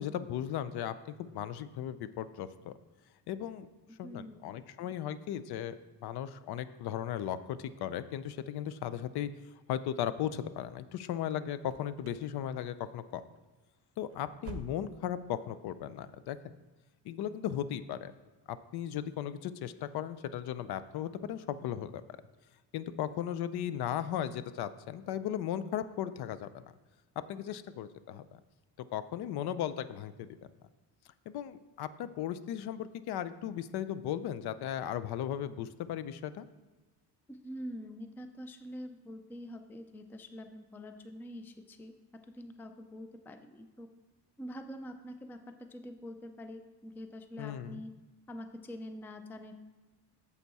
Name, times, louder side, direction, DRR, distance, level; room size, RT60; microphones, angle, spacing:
voice 1, 0.0-2.7 3.3-3.7 4.0-5.8 6.0-9.3 9.7-13.2 14.0-16.4 17.1-18.1 18.5-22.0 22.7-26.6 27.3-28.4 28.9-30.3 31.3-36.5 47.4-47.8, left 10 dB, 65° left, 14 dB, 0.6 m, -36 dB
voice 2, 4.0-4.4 37.3-42.0 42.3-43.9 44.4-47.9 48.3-49.5, equal, 5° left, 8 dB, 0.3 m, -45 dB
sound 1, 11.6-12.3 12.6-13.0 13.3-13.5 13.9-15.2 15.5-15.6 16.1-16.2, right 4 dB, 35° right, 0.7 m, -48 dB
8.1 x 7.2 x 4.1 m, 1.2 s
cardioid pair, 135°, 41 cm